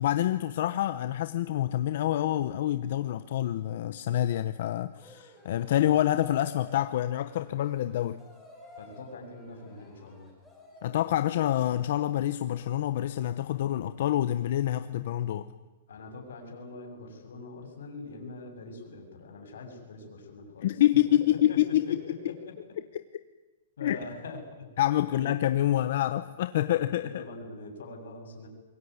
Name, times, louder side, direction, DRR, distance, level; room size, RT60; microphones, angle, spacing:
voice 1, 0.0-8.2 10.8-15.4 20.6-22.0 23.8-24.0 24.8-27.2, left 12 dB, 50° left, 11 dB, 0.9 m, -27 dB
sound 1, 4.9-11.1, left 1 dB, 5° right, 5.7 m, -52 dB
voice 2, 8.8-10.3 15.9-20.7 21.1-22.6 23.8-24.7 25.1-25.3 26.9-28.5, left 3 dB, 85° left, 3 dB, 7.8 m, -43 dB
25.0 x 22.0 x 9.7 m, 1.2 s
hypercardioid pair, 170°, 0 cm